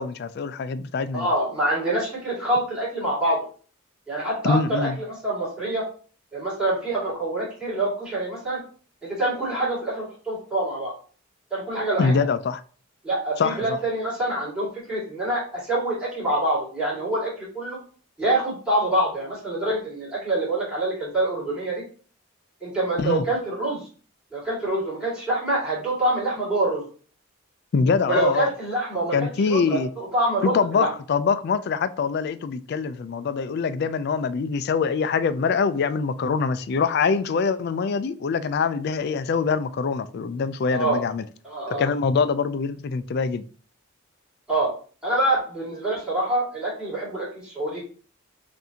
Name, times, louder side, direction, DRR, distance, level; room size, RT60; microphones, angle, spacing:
voice 1, 0.0-1.3 4.4-5.0 12.0-12.6 13.4-13.8 23.0-23.2 27.7-28.5 29.1-29.9 30.4-41.2 41.7-43.4, left 5 dB, 50° left, 0.3 m, -24 dB
voice 2, 1.1-3.4 4.1-5.8 6.3-8.6 9.0-10.9 11.5-12.2 13.0-17.8 18.2-21.8 22.6-23.9 24.3-26.8 28.1-29.2 29.5-30.9 40.7-41.0 41.4-41.9 44.5-44.7 45.0-47.8, right 1 dB, 5° right, 2.0 m, -26 dB
5.6 x 2.6 x 2.8 m
head